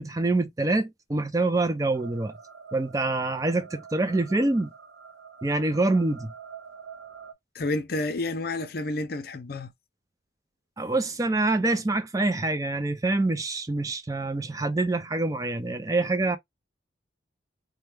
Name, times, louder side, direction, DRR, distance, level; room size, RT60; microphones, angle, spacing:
voice 1, 0.0-2.3 2.7-4.7 5.4-6.3 10.8-16.4, right 2 dB, 20° right, 0.4 m, -26 dB
sound 1, 1.9-7.3, right 6 dB, 75° right, 0.9 m, -46 dB
voice 2, 7.5-9.7, left 2 dB, 55° left, 0.6 m, -30 dB
4.3 x 2.2 x 3.3 m
head